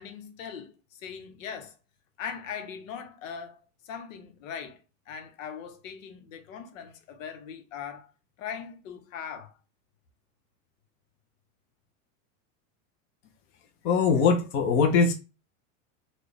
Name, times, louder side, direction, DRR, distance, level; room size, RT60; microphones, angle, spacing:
voice 1, 0.0-1.7 2.2-4.8 5.1-8.1 8.4-9.5, left 7 dB, 85° left, 1.0 m, -40 dB
voice 2, 13.8-15.1, left 5 dB, 30° left, 0.6 m, -21 dB
4.2 x 2.3 x 3.3 m
supercardioid pair, 165°, 38 cm